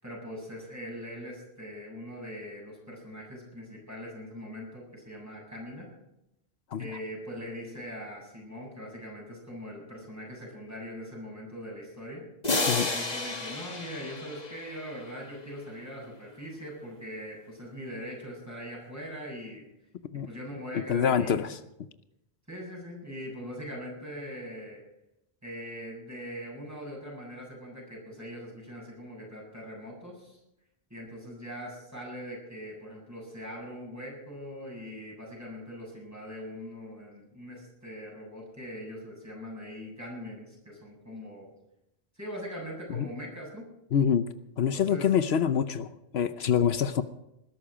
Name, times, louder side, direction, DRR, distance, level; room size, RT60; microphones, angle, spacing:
voice 1, 0.0-5.9 6.8-12.2 12.9-19.6 20.2-21.5 22.5-24.8 25.4-30.4 30.9-41.5 42.1-43.7 44.7-45.2, equal, 15° right, -3 dB, 7.7 m, -41 dB
sound 1, 12.4-15.1, left 3 dB, 40° left, 1.8 m, -31 dB
voice 2, 20.9-21.6 42.9-43.1 43.9-44.3 44.6-47.0, left 8 dB, 80° left, 12 dB, 1.0 m, -26 dB
20.5 x 12.0 x 5.0 m, 0.87 s
omnidirectional pair, 1.1 m